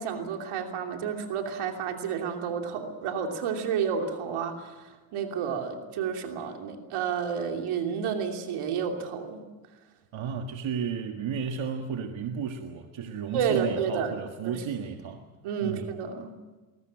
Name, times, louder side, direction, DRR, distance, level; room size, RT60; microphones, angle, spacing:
voice 1, 0.0-9.4 13.3-14.1 14.4-14.6 15.4-16.3, right 7 dB, 85° right, 3 dB, 3.0 m, -30 dB
voice 2, 10.1-15.3 15.6-15.9, right 7 dB, 70° right, 4 dB, 1.8 m, -33 dB
21.5 x 18.5 x 8.7 m, 1.2 s
supercardioid pair, 65°, 49 cm